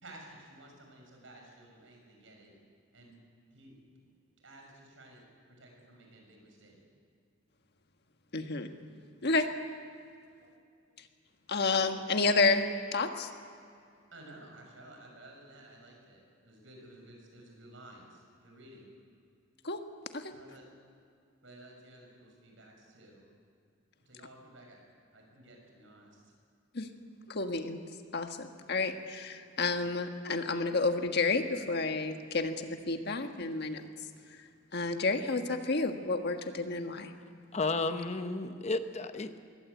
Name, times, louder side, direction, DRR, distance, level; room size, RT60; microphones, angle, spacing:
voice 1, 0.0-2.5 2.9-3.1 3.5-3.7 4.4-5.2 5.6-6.8 10.4-10.5 14.1-18.1 18.4-18.9 20.3-20.6 21.4-23.2 24.1-24.8 25.1-26.1, right 1 dB, 75° right, 1 dB, 6.4 m, -53 dB
voice 2, 8.3-8.7 9.2-9.5 11.5-12.6 12.9-13.3 19.6-19.8 20.1-20.3 26.7-26.9 27.3-27.8 28.1-33.8 34.7-37.1, left 3 dB, 55° left, 6 dB, 1.5 m, -30 dB
voice 3, 37.5-39.4, left 3 dB, 35° left, 9 dB, 1.0 m, -32 dB
22.5 x 17.0 x 8.3 m, 2.3 s
head